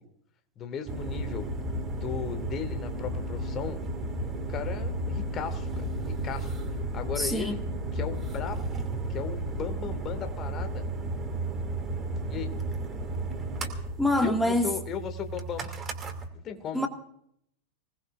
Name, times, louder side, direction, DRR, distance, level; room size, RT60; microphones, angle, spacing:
voice 1, 0.6-1.5 1.9-3.8 4.5-6.5 6.9-7.6 7.9-8.8 9.1-10.9 12.3-12.6 14.2-15.7 16.3-16.9, left 7 dB, 30° left, 8 dB, 2.2 m, -36 dB
sound 1, 0.9-16.3, right 2 dB, 20° right, 2.7 m, -33 dB
voice 2, 7.2-7.6 14.0-14.7 16.7-16.9, left 1 dB, 5° left, 4 dB, 2.1 m, -25 dB
25.5 x 19.0 x 2.6 m, 0.69 s
figure-of-eight pair, 90°, 0 cm